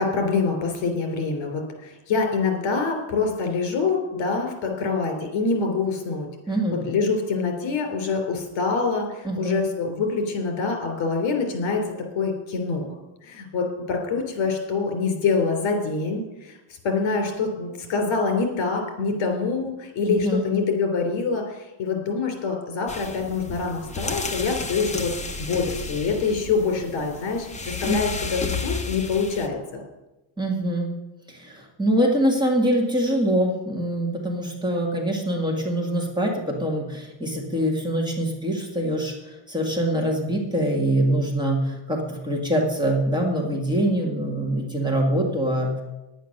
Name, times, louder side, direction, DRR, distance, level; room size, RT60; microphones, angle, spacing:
voice 1, 0.0-6.3 6.8-11.8 12.1-12.8 13.2-16.3 16.8-25.1 25.4-29.8, left 4 dB, 70° left, 3 dB, 3.3 m, -25 dB
voice 2, 6.5-6.8 9.2-9.6 20.1-20.5 27.9-28.0 30.4-30.9 31.3-39.1 39.5-45.8, right 1 dB, 10° right, -1 dB, 1.9 m, -24 dB
sound 1, 22.9-29.5, left 4 dB, 15° left, 0.7 m, -32 dB
10.0 x 9.2 x 6.5 m, 1.0 s
cardioid pair, 155°, 46 cm